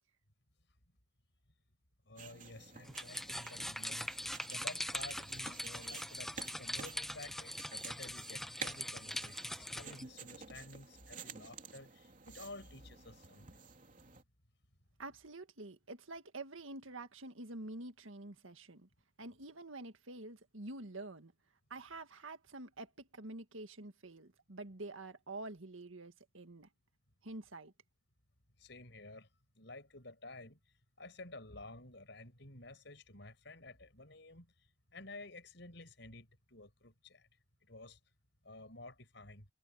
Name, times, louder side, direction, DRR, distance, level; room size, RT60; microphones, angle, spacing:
voice 1, 2.0-13.6 28.6-29.3 29.5-37.3 37.6-38.0 38.4-39.5, left 2 dB, 60° left, 6.6 m, -52 dB
sound 1, 2.2-14.2, right 6 dB, 40° right, 3.2 m, -52 dB
sound 2, 2.9-10.0, left 1 dB, ahead, 0.8 m, -42 dB
voice 2, 15.0-18.9 19.2-21.3 21.7-26.7 27.2-27.7, right 2 dB, 85° right, 1.9 m, -47 dB
head